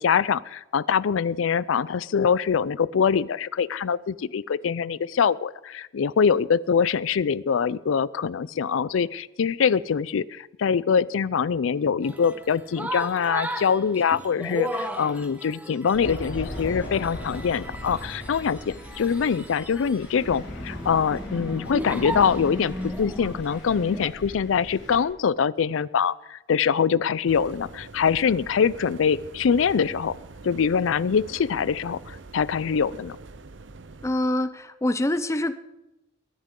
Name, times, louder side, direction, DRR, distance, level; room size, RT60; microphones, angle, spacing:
voice 1, 0.0-30.2 30.4-33.2, left 6 dB, 85° left, 20 dB, 0.4 m, -24 dB
sound 1, 12.0-24.1, equal, 10° right, 1.0 m, -36 dB
Thunder, 15.9-25.0, left 1 dB, 70° left, 2.8 m, -38 dB
sound 2, 27.3-34.2, right 3 dB, 70° right, 0.7 m, -44 dB
voice 2, 34.0-35.5, left 1 dB, 15° left, 12 dB, 0.6 m, -25 dB
23.0 x 10.5 x 3.8 m, 0.98 s
head